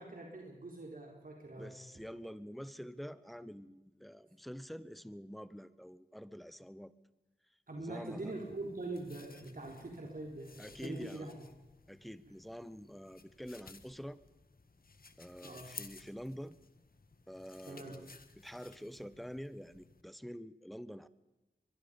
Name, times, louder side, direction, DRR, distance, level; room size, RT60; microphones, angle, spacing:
voice 1, 0.0-1.7 7.7-11.4 15.4-15.7 17.7-18.0, right 2 dB, 50° right, 0 dB, 4.5 m, -43 dB
voice 2, 1.5-6.9 7.8-8.3 10.6-11.3 11.9-14.2 15.2-16.6 17.3-21.1, equal, ahead, 15 dB, 1.1 m, -47 dB
sound 1, 8.2-20.0, left 4 dB, 55° left, 1.7 m, -56 dB
23.5 x 22.0 x 5.4 m, 1.1 s
wide cardioid pair, 70°, 18 cm